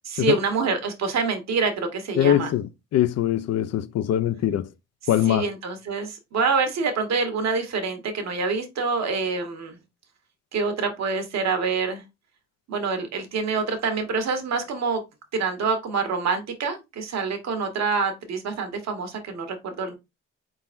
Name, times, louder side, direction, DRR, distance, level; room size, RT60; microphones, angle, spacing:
voice 1, 0.0-2.5 5.3-9.8 10.5-12.0 12.7-15.0 15.3-19.9, right 4 dB, 60° right, 1.3 m, -26 dB
voice 2, 2.2-4.7 5.1-5.5, left 11 dB, 60° left, 0.5 m, -22 dB
4.1 x 3.8 x 2.5 m
cardioid pair, 90°, 30 cm